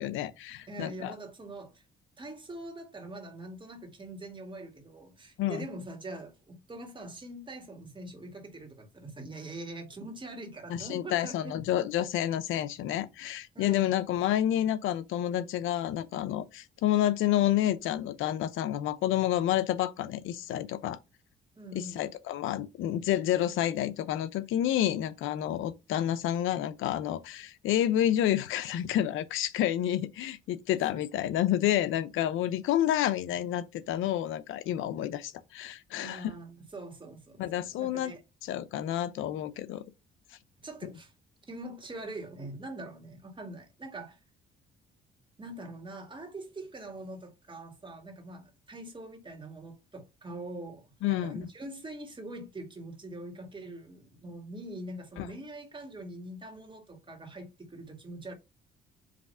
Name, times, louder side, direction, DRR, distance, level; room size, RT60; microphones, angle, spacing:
voice 1, 0.0-1.1 5.4-5.7 10.7-21.0 21.7-36.3 37.4-38.1 38.4-39.8 51.0-51.4 55.2-55.3, left 12 dB, 85° left, 0.7 m, -29 dB
voice 2, 0.7-1.8 2.2-11.6 13.5-14.0 21.6-22.1 36.0-38.2 40.6-41.1 41.5-44.2 45.4-58.3, right 1 dB, 25° right, 2.2 m, -43 dB
5.1 x 3.4 x 5.6 m
cardioid pair, 90°, 20 cm